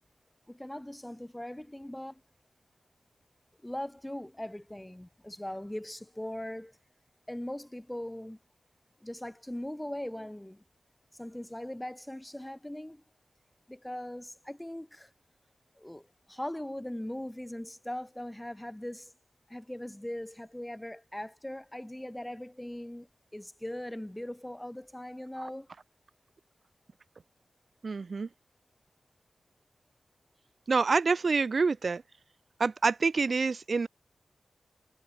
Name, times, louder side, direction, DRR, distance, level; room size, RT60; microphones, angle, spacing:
voice 1, 0.5-2.2 3.6-6.8 7.3-8.4 9.0-10.6 11.1-13.0 13.7-15.1 15.8-19.1 19.5-25.7, left 1 dB, 10° left, 0.8 m, -40 dB
voice 2, 27.8-28.3 30.7-32.0 32.6-33.9, right 4 dB, 50° right, 0.5 m, -27 dB
wide cardioid pair, 120°, 0 cm